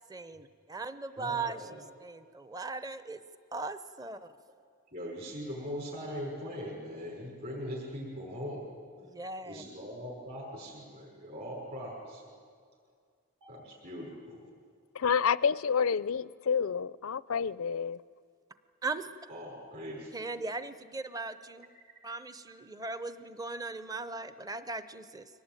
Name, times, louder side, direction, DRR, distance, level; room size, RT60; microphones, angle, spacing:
voice 1, 0.1-3.2 3.5-4.2 9.0-9.6 18.8-19.1 20.1-21.7 22.0-25.3, right 3 dB, 15° right, 12 dB, 0.8 m, -38 dB
voice 2, 1.1-1.9 4.9-8.7 9.4-12.2 13.4-14.5 19.3-20.2, equal, 45° right, -4 dB, 5.7 m, -41 dB
voice 3, 14.9-18.0, left 6 dB, 70° left, 19 dB, 0.5 m, -29 dB
23.5 x 18.5 x 9.1 m, 2.1 s
head